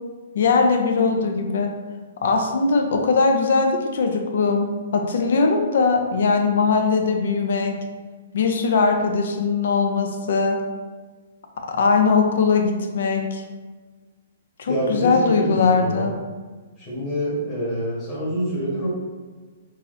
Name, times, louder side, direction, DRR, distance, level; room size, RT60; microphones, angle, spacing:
voice 1, 0.3-1.7 2.2-7.8 8.3-10.6 11.7-13.4 14.6-16.1, left 4 dB, 70° left, 4 dB, 0.5 m, -20 dB
voice 2, 14.7-16.1 16.8-18.9, equal, 20° left, -11 dB, 1.4 m, -26 dB
3.8 x 2.8 x 2.5 m, 1.4 s
hypercardioid pair, 135°, 0 cm